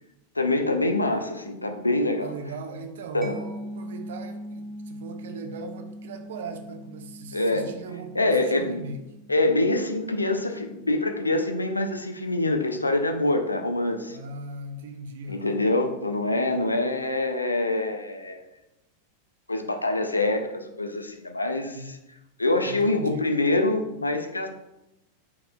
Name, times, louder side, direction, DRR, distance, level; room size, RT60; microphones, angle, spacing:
voice 1, 0.4-2.3 3.1-3.4 7.3-7.7 8.1-8.8 9.3-14.2 15.3-18.4 19.5-22.0 22.4-24.5, left 2 dB, 80° left, 6 dB, 0.4 m, -25 dB
voice 2, 2.2-9.0 14.1-15.6 21.7-21.9 22.6-23.3, right 3 dB, 60° right, 6 dB, 0.4 m, -39 dB
Mallet percussion, 3.2-10.6, equal, 5° right, 0.5 m, -41 dB
4.2 x 4.0 x 2.2 m, 0.94 s
figure-of-eight pair, 90°, 0 cm